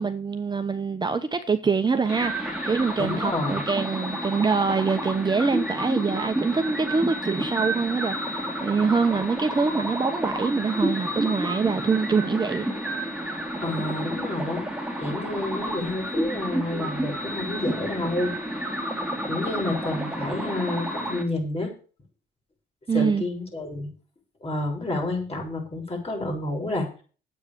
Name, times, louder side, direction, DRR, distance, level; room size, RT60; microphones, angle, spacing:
voice 1, 0.0-12.7 22.9-23.2, right 4 dB, 20° right, 1.0 m, -25 dB
sound 1, 2.0-21.2, right 1 dB, 5° right, 3.1 m, -30 dB
voice 2, 3.0-3.6 13.6-14.7 15.0-18.3 19.3-21.7 22.9-23.9 24.4-27.0, left 2 dB, 30° left, 6.5 m, -29 dB
9.6 x 8.4 x 6.8 m
cardioid pair, 90°, 20 cm